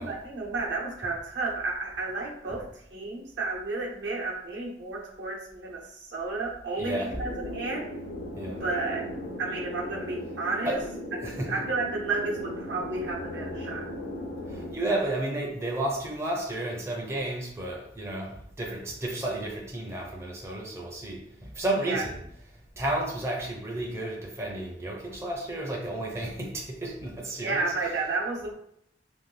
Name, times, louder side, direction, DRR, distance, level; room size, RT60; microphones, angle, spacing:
voice 1, 0.0-2.6 2.9-7.9 8.6-9.1 9.4-10.8 11.4-13.8 21.8-22.0 27.4-28.5, right 3 dB, 75° right, -2 dB, 0.7 m, -32 dB
voice 2, 6.8-7.2 8.4-8.6 10.6-10.9 11.2-11.7 14.5-28.0, right 1 dB, 15° right, -2 dB, 0.4 m, -32 dB
sound 1, 7.1-14.7, left 1 dB, 70° left, 0.6 m, -37 dB
2.5 x 2.5 x 3.2 m, 0.71 s
head